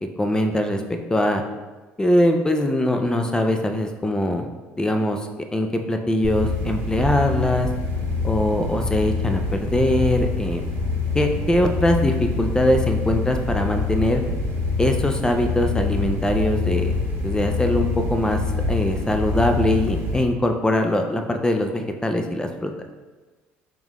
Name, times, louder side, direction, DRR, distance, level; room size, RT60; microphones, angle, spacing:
voice 1, 0.2-0.8 1.1-1.4 2.0-4.5 4.8-7.7 8.2-10.7 11.1-14.2 14.8-17.0 17.2-18.4 18.7-22.7, left 1 dB, 15° left, 4 dB, 0.4 m, -22 dB
sound 1, 6.2-20.2, left 4 dB, 70° right, 1.1 m, -25 dB
3.7 x 3.6 x 3.0 m, 1.3 s
supercardioid pair, 75°, 6 cm